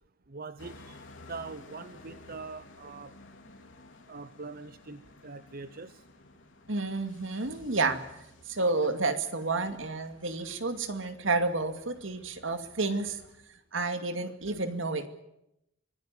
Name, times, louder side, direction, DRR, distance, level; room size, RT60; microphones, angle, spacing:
voice 1, 0.3-1.0 1.3-3.1 4.1-6.0, right 4 dB, 50° right, 12 dB, 0.8 m, -43 dB
sound 1, 0.6-13.4, left 2 dB, 65° left, 3.3 m, -54 dB
voice 2, 6.7-13.2 13.7-15.1, right 3 dB, 70° right, 8 dB, 2.3 m, -30 dB
24.5 x 17.0 x 9.2 m, 0.84 s
head